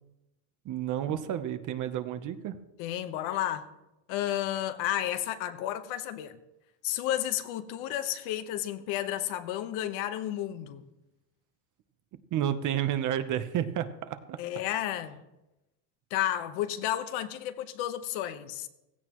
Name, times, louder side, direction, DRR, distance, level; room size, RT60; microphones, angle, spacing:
voice 1, 0.6-2.6 12.3-14.4, right 10 dB, 40° right, 0.8 m, -31 dB
voice 2, 2.8-3.7 4.1-6.4 6.8-10.8 14.4-15.2 16.1-18.7, left 12 dB, 70° left, 1.2 m, -32 dB
16.0 x 16.0 x 3.0 m
cardioid pair, 165°, 48 cm